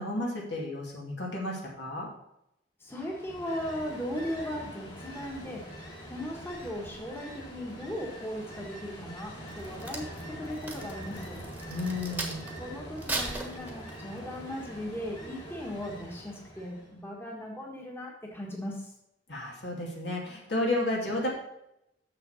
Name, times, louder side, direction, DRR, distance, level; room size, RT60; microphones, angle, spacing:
voice 1, 0.0-2.1 11.7-12.4 19.3-21.3, left 1 dB, 70° left, -2 dB, 2.5 m, -32 dB
voice 2, 2.8-5.6 6.1-10.1 10.4-11.4 12.6-18.9, equal, 15° left, -2 dB, 1.5 m, -37 dB
Ocean, 2.9-17.0, equal, 30° left, 2.6 m, -44 dB
Crack, 9.5-12.6 13.0-14.2 14.7-15.0, right 2 dB, 10° right, 1.4 m, -37 dB
6.9 x 6.7 x 5.6 m, 0.83 s
head